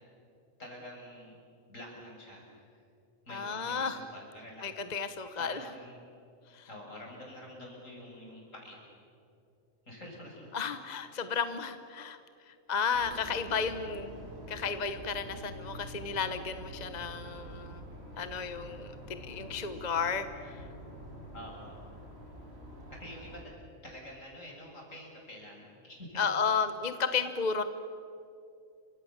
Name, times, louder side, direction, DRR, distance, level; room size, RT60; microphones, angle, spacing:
voice 1, 0.6-1.3 1.7-2.7 3.3-4.8 5.4-6.0 6.7-8.8 9.9-10.5 21.3-21.8 22.9-23.5 23.8-26.2, left 1 dB, 75° left, -1 dB, 7.3 m, -47 dB
voice 2, 3.3-4.0 4.6-5.6 6.5-6.7 10.5-12.2 12.5-14.1 14.5-17.8 18.2-20.6 26.2-27.6, left 6 dB, 35° left, 10 dB, 1.1 m, -33 dB
sound 1, 12.9-23.4, right 1 dB, 55° right, 5.1 m, -46 dB
29.5 x 25.5 x 7.3 m, 2.5 s
omnidirectional pair, 1.3 m